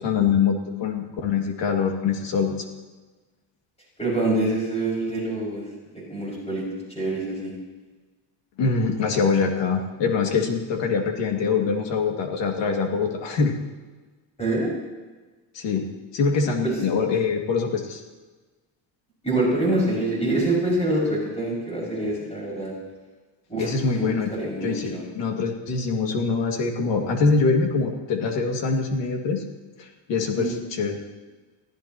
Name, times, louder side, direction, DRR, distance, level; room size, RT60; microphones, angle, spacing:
voice 1, 0.0-2.6 8.6-13.5 15.5-15.9 16.1-18.0 23.6-29.4 29.8-31.0, left 5 dB, 70° left, 2 dB, 2.5 m, -24 dB
voice 2, 4.0-5.6 5.9-6.7 6.9-7.5 14.4-14.7 16.6-16.7 19.2-22.7 23.5-23.7 24.0-25.0 30.3-30.6, right 2 dB, 15° left, -5 dB, 6.4 m, -25 dB
23.0 x 14.5 x 3.0 m, 1.3 s
cardioid pair, 175°, 45 cm